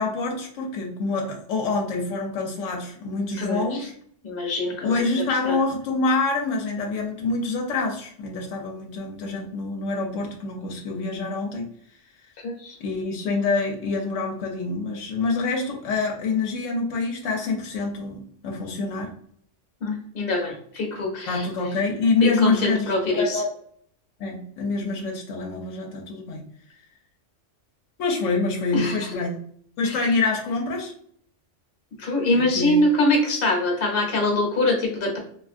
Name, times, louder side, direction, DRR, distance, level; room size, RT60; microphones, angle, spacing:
voice 1, 0.0-3.9 4.8-11.7 12.8-19.1 21.3-23.5 24.2-26.4 28.0-29.4 29.8-30.9 32.3-32.8, left 3 dB, 85° left, 1 dB, 1.0 m, -26 dB
voice 2, 3.4-3.8 4.2-5.0 5.4-5.6 12.4-12.8 19.8-21.4 22.2-23.4 28.7-29.2 29.9-30.0 32.0-35.2, left 2 dB, 50° left, 0 dB, 1.0 m, -24 dB
3.4 x 2.4 x 2.4 m, 0.62 s
omnidirectional pair, 1.3 m